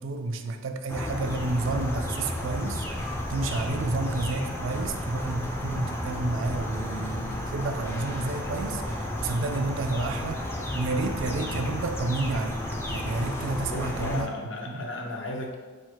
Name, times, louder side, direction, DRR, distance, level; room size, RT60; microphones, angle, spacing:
voice 1, 0.0-10.5 10.7-12.6 12.9-14.3 14.7-14.8, right 3 dB, 70° right, 7 dB, 0.4 m, -30 dB
sound 1, 0.9-14.2, left 1 dB, 10° left, 0.3 m, -32 dB
voice 2, 13.7-15.5, left 2 dB, 65° left, 2 dB, 0.6 m, -35 dB
4.2 x 2.1 x 4.5 m, 1.4 s
head